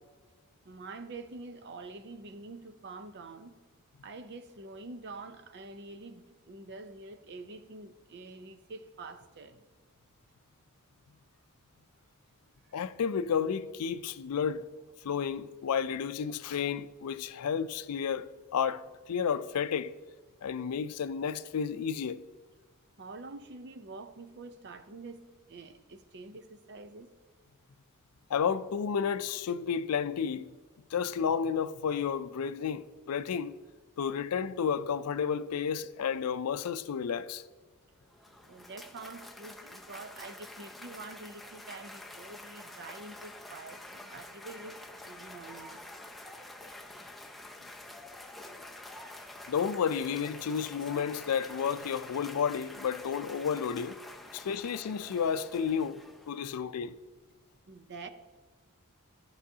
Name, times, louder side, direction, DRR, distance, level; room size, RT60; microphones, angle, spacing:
voice 1, 0.6-3.6 4.0-9.6 12.7-12.9 23.0-27.1 38.5-45.8 54.2-54.3 57.7-58.1, right 3 dB, 50° right, 0.6 m, -46 dB
voice 2, 12.7-14.6 15.0-19.9 20.4-22.2 28.3-30.5 30.9-33.5 34.0-37.4 49.5-54.0 54.3-57.0, left 7 dB, 85° left, 0.4 m, -31 dB
Cheering / Applause, 37.9-56.6, left 1 dB, ahead, 0.5 m, -48 dB
14.0 x 5.6 x 2.8 m
head